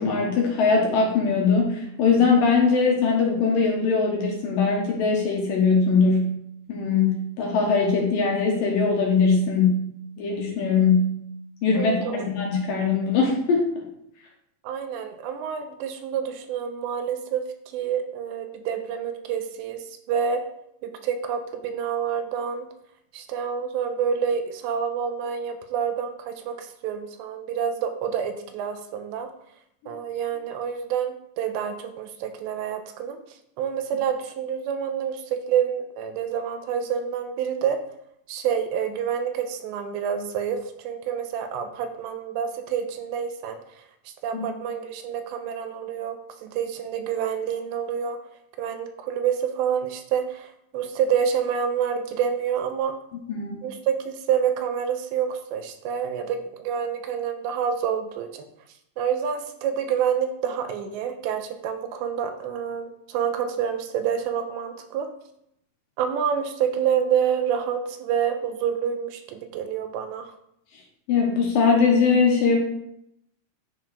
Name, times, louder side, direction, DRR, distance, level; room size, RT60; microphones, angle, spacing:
voice 1, 0.0-6.3 6.7-9.9 10.2-11.1 11.6-13.7 44.3-44.4 53.3-53.6 71.1-72.6, left 4 dB, 65° left, -1 dB, 2.5 m, -21 dB
voice 2, 11.8-12.3 14.6-17.4 17.7-20.4 20.8-22.7 23.1-29.3 29.9-33.2 33.6-37.8 38.3-40.6 40.8-43.6 44.2-48.2 48.6-52.9 53.6-58.5 59.0-65.1 66.0-70.3, right 8 dB, 90° right, 7 dB, 3.0 m, -28 dB
9.8 x 4.6 x 4.8 m, 0.75 s
omnidirectional pair, 5.1 m